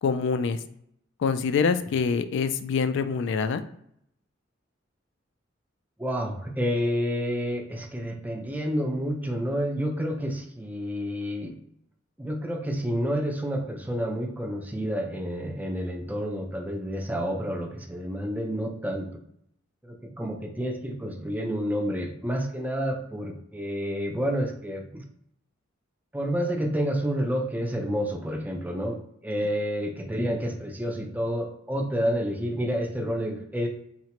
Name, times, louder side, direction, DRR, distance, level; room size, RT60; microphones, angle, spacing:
voice 1, 0.0-0.6 1.2-3.6, left 5 dB, 65° left, 10 dB, 0.3 m, -25 dB
voice 2, 6.0-11.6 12.2-19.2 19.8-25.0 26.1-33.7, equal, 10° right, 3 dB, 0.4 m, -29 dB
3.9 x 2.1 x 2.9 m, 0.72 s
head